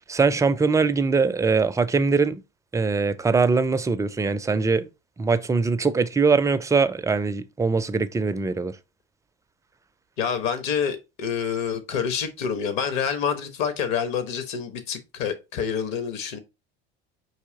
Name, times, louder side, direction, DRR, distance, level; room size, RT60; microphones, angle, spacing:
voice 1, 0.1-2.4 2.7-4.9 5.2-8.8, right 4 dB, 10° right, 0.4 m, -22 dB
voice 2, 10.2-16.4, left 7 dB, 60° left, 1.1 m, -27 dB
4.7 x 2.8 x 3.8 m
hypercardioid pair, 80°, 31 cm